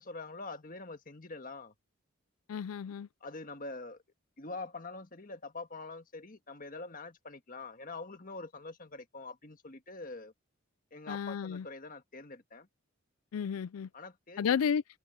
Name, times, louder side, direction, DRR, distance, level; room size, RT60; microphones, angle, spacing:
voice 1, 0.0-1.7 3.2-4.0 4.4-10.3 10.9-12.7 13.9-14.6, left 3 dB, 40° left, 1.6 m, -45 dB
voice 2, 2.5-3.1 11.1-11.6 13.3-13.9 14.4-14.8, left 7 dB, 85° left, 0.4 m, -32 dB
head